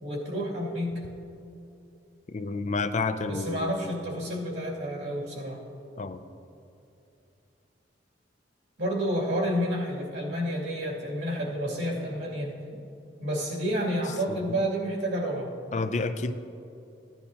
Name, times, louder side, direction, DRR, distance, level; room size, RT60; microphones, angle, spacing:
voice 1, 0.0-1.1 3.3-5.6 8.8-12.6 13.2-15.5, equal, 85° right, -4 dB, 2.5 m, -30 dB
voice 2, 2.3-3.7 6.0-6.2 15.7-16.3, left 3 dB, 40° left, 10 dB, 0.4 m, -29 dB
15.0 x 10.5 x 2.8 m, 2.6 s
head